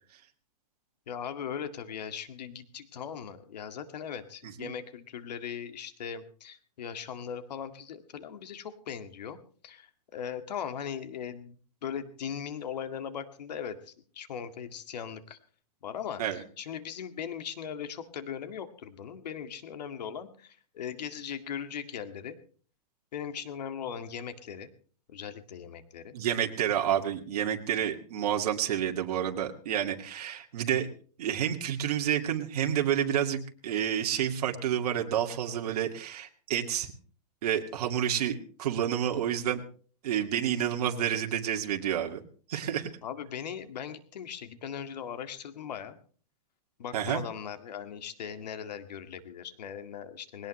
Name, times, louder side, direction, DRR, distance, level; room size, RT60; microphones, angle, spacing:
voice 1, 1.1-9.4 9.6-11.6 11.8-15.4 15.8-22.4 23.1-24.7 25.1-26.1 43.0-46.0 46.8-50.5, left 8 dB, 80° left, 10 dB, 2.1 m, -39 dB
voice 2, 26.1-30.9 31.2-36.9 37.4-39.6 40.0-42.2 42.5-42.9 46.9-47.2, right 10 dB, 65° right, 3 dB, 2.3 m, -29 dB
20.0 x 18.0 x 3.2 m, 0.42 s
hypercardioid pair, 145°, 21 cm